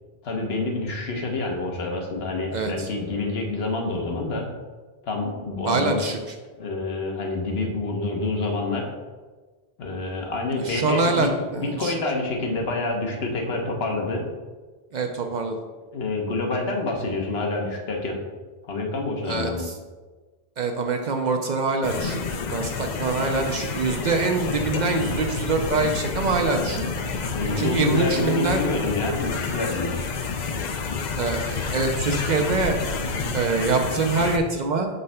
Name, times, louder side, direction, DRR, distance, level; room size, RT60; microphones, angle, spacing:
voice 1, 0.2-4.5 5.0-6.0 6.6-8.9 9.8-14.3 15.9-18.2 18.7-19.7 27.3-30.1, left 2 dB, 75° left, 1 dB, 1.2 m, -27 dB
voice 2, 2.5-2.9 5.7-6.2 10.6-11.9 14.9-15.6 19.3-19.8 20.6-22.2 22.5-26.8 27.6-28.7 31.2-32.8 33.3-34.9, right 3 dB, 55° right, 4 dB, 0.6 m, -24 dB
sound 1, 21.8-34.4, left 4 dB, 55° left, 0.6 m, -29 dB
5.3 x 3.2 x 5.5 m, 1.3 s
omnidirectional pair, 1.0 m